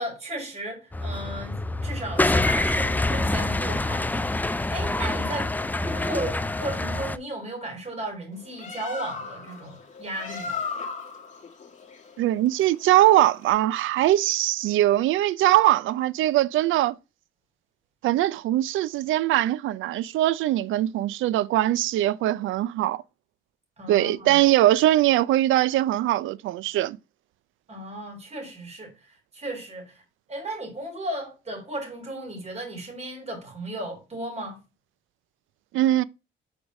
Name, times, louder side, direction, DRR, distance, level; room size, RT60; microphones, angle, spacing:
voice 1, 0.0-5.6 5.8-10.6 23.8-24.4 27.7-30.0 30.3-34.6, right 1 dB, 35° right, 4.0 m, -35 dB
sound 1, 0.9-7.2, left 2 dB, 10° left, 0.4 m, -26 dB
Bird, 8.3-13.5, left 5 dB, 40° left, 2.1 m, -37 dB
voice 2, 12.2-17.0 18.0-23.0 23.9-27.0 35.7-36.0, right 14 dB, 80° right, 0.5 m, -21 dB
5.2 x 4.8 x 5.2 m
cardioid pair, 90°, 20 cm